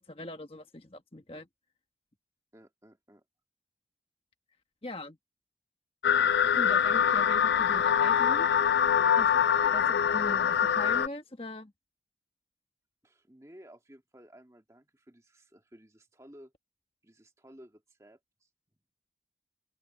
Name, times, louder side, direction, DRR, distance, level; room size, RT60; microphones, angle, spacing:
voice 1, 0.0-1.5 4.8-5.2 6.5-8.5 9.2-9.3 9.7-11.7, left 1 dB, 35° left, 1.4 m, -40 dB
voice 2, 2.5-3.2 9.0-9.8 13.0-16.5 17.0-18.5, equal, 20° right, 2.2 m, -55 dB
sound 1, 6.0-11.1, left 8 dB, 75° left, 0.3 m, -24 dB
open air
head